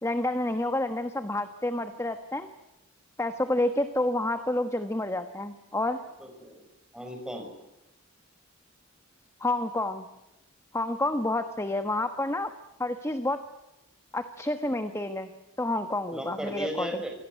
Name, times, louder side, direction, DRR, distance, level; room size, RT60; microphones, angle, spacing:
voice 1, 0.0-2.5 3.2-6.0 9.4-10.1 10.7-12.5 12.8-13.4 14.1-15.3 15.6-17.0, left 1 dB, 15° left, 8 dB, 1.2 m, -29 dB
voice 2, 6.2-6.6 6.9-7.5 16.1-17.1, equal, 5° right, 3 dB, 5.7 m, -36 dB
26.5 x 18.0 x 9.5 m, 0.95 s
head